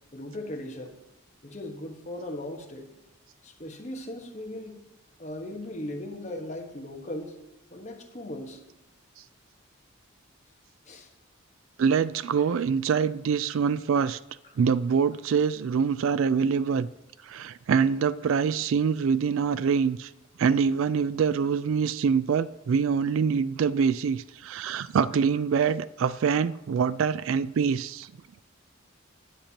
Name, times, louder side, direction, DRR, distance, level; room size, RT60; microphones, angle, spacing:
voice 1, 0.1-1.0 1.4-2.9 3.4-4.8 5.2-7.4 7.7-8.6 10.8-11.1 12.4-12.5 14.4-14.6, left 1 dB, 35° left, 1.3 m, -38 dB
voice 2, 11.8-14.2 14.6-16.9 17.2-20.1 20.4-28.1, right 6 dB, 70° right, 0.3 m, -25 dB
13.0 x 8.8 x 2.9 m
head